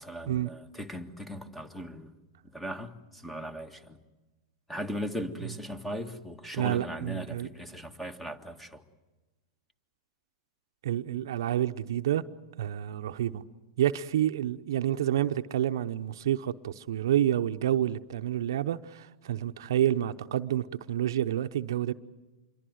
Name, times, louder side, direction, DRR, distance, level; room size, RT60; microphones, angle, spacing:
voice 1, 0.0-2.1 2.5-4.0 4.7-8.8, equal, 5° left, 1.7 m, -38 dB
voice 2, 6.5-7.5 10.8-12.2 12.6-13.4 13.8-21.9, right 11 dB, 70° right, 0.8 m, -29 dB
26.5 x 23.0 x 7.9 m
hypercardioid pair, 115°, 2 cm